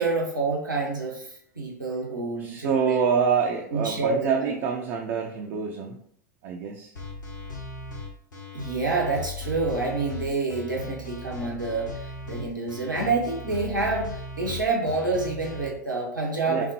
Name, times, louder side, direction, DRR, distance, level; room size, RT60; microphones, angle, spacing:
voice 1, 0.0-3.1 3.7-4.5 8.5-16.7, right 3 dB, 85° right, -2 dB, 1.1 m, -28 dB
voice 2, 2.4-6.0 6.4-6.9 16.5-16.7, right 6 dB, 45° right, 1 dB, 0.5 m, -26 dB
sound 1, 7.0-15.7, left 2 dB, 75° left, 1.5 m, -37 dB
5.9 x 2.1 x 2.8 m, 0.65 s
figure-of-eight pair, 85°, 10 cm